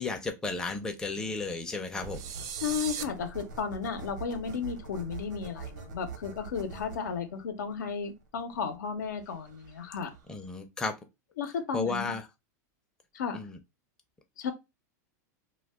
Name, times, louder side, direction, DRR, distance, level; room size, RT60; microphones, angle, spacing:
voice 1, 0.0-2.2 10.3-10.9 11.7-12.3 13.3-13.6, left 3 dB, 5° left, 0.5 m, -33 dB
sound 1, 1.9-10.5, right 5 dB, 85° right, 0.8 m, -45 dB
sound 2, 2.1-3.0, right 9 dB, 60° right, 0.4 m, -37 dB
voice 2, 2.6-10.1 11.4-12.1 13.1-13.5 14.4-14.5, left 6 dB, 90° left, 0.7 m, -34 dB
2.3 x 2.2 x 3.4 m
supercardioid pair, 130°, 10 cm